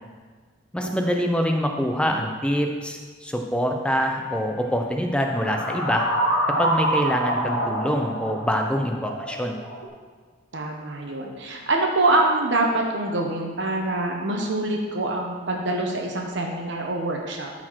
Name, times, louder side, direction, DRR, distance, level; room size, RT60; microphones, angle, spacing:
voice 1, 0.7-6.1 6.5-9.6, equal, 5° left, 3 dB, 0.6 m, -25 dB
sound 1, 5.3-9.9, right 1 dB, 55° left, 1.5 m, -26 dB
voice 2, 10.5-17.5, right 2 dB, 60° right, 1 dB, 0.9 m, -25 dB
12.5 x 4.3 x 4.6 m, 1.5 s
head